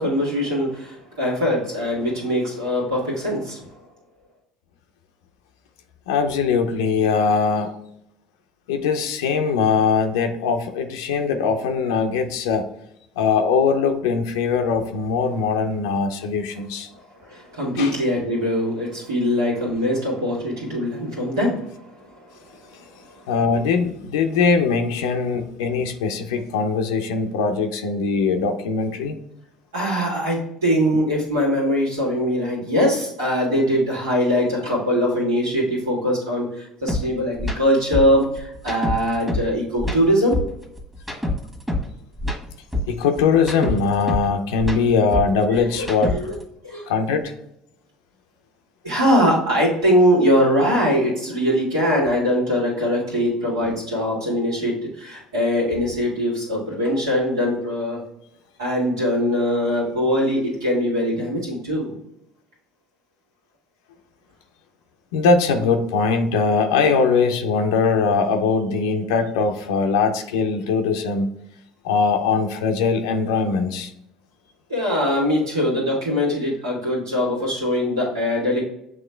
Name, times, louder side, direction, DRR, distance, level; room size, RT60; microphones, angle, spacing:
voice 1, 0.0-3.6 17.2-21.6 29.7-40.4 45.5-46.4 46.6-46.9 48.8-58.0 58.6-61.9 74.7-78.6, equal, 85° right, 1.8 m, -22 dB
voice 2, 6.1-7.7 8.7-12.7 13.2-16.9 17.8-17.9 23.3-29.1 38.7-38.8 42.9-46.2 46.9-47.3 53.6-53.7 65.1-71.3 71.8-73.9, left 5 dB, 75° left, 0.5 m, -21 dB
sound 1, 36.9-37.0 37.4-37.6 37.9-39.5 39.8-41.9 42.2-44.3 44.6-46.4, left 1 dB, 5° right, 1.2 m, -26 dB
7.7 x 3.0 x 2.2 m
hypercardioid pair, 65°, 2 cm